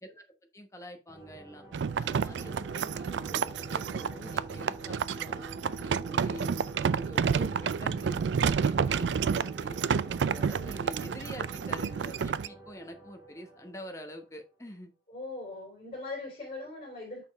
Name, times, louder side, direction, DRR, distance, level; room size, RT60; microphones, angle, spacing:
voice 1, 0.5-1.6 2.0-6.5 6.8-9.8 10.2-14.9, equal, 15° left, 1.1 m, -46 dB
sound 1, 1.1-14.6, right 1 dB, 15° right, 2.4 m, -47 dB
sound 2, 1.7-12.5, right 6 dB, 85° right, 0.4 m, -30 dB
voice 2, 15.1-17.2, left 3 dB, 35° left, 3.5 m, -40 dB
6.7 x 5.3 x 3.5 m
head